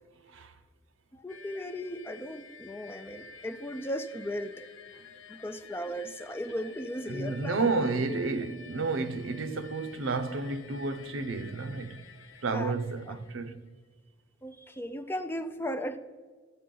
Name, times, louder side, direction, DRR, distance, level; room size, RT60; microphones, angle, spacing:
voice 1, 1.1-4.7 5.3-7.7 12.5-12.8 13.1-13.2 14.4-16.0, equal, 10° left, 0.4 m, -36 dB
sound 1, 1.3-13.7, left 4 dB, 70° left, 0.7 m, -51 dB
voice 2, 7.1-12.1 12.4-13.7, right 3 dB, 75° right, 0.6 m, -31 dB
12.0 x 7.3 x 3.8 m
head